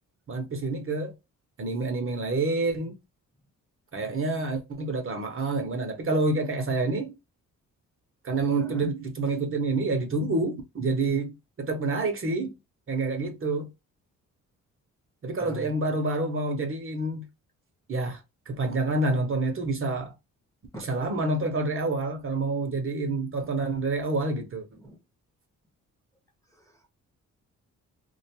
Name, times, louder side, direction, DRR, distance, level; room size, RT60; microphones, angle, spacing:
voice 1, 0.3-1.1 1.6-3.0 3.9-7.2 8.2-12.5 12.9-13.7 15.2-17.2 17.9-20.1 20.7-24.7, right 3 dB, 40° right, 0.7 m, -28 dB
voice 2, 8.6-8.9 15.4-15.8 20.7-20.9 24.8-25.0, equal, 10° left, 0.8 m, -40 dB
2.4 x 2.2 x 2.8 m
cardioid pair, 95°, 32 cm